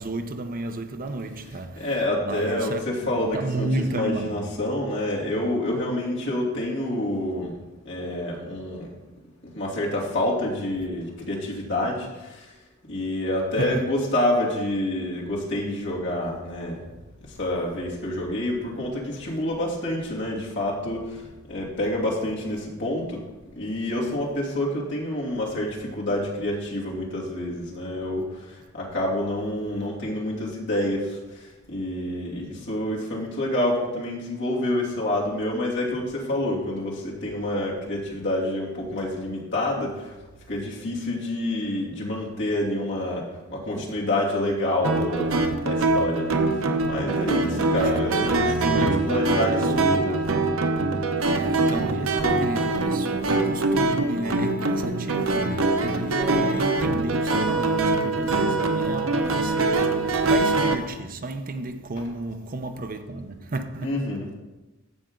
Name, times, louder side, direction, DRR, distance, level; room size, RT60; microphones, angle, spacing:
voice 1, 0.0-1.9 2.2-4.5 13.6-13.8 43.7-43.9 46.6-46.9 47.4-47.9 48.2-50.3 51.3-64.0, right 2 dB, 45° right, 0.7 m, -32 dB
voice 2, 1.4-7.6 7.8-8.9 9.4-12.5 12.9-16.9 17.2-23.2 23.6-40.2 40.5-50.2 63.8-64.4, left 1 dB, 60° left, 2.8 m, -28 dB
sound 1, 44.8-60.8, right 2 dB, 80° right, 0.9 m, -23 dB
15.0 x 5.8 x 3.8 m
head